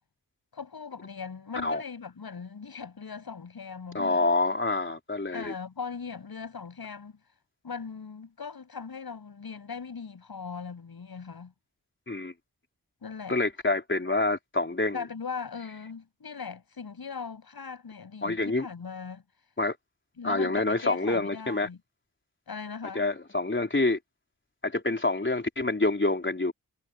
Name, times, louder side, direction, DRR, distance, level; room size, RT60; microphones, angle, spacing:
voice 1, 0.5-4.2 5.3-7.2 7.6-11.5 13.0-13.4 14.9-19.2 20.2-21.8 22.5-23.0, left 5 dB, 85° left, 8.0 m, -39 dB
voice 2, 3.9-5.5 12.1-12.3 13.3-15.0 18.2-18.7 19.6-19.8 20.2-21.7 22.9-24.0 24.6-26.5, left 2 dB, 30° left, 4.1 m, -27 dB
wide cardioid pair, 65°, 36 cm